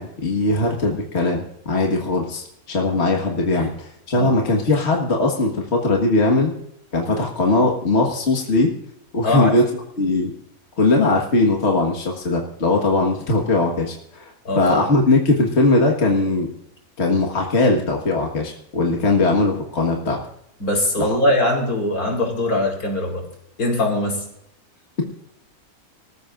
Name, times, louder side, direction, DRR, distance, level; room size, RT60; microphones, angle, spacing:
voice 1, 0.0-6.5 6.9-8.7 9.1-10.3 10.8-16.5 17.0-20.2 21.0-21.1, left 2 dB, 50° left, 0 dB, 1.9 m, -20 dB
voice 2, 9.2-9.6 14.4-14.8 20.6-23.2 23.6-24.2, left 1 dB, 75° left, 1 dB, 4.3 m, -21 dB
24.5 x 14.5 x 2.6 m, 0.77 s
omnidirectional pair, 1.5 m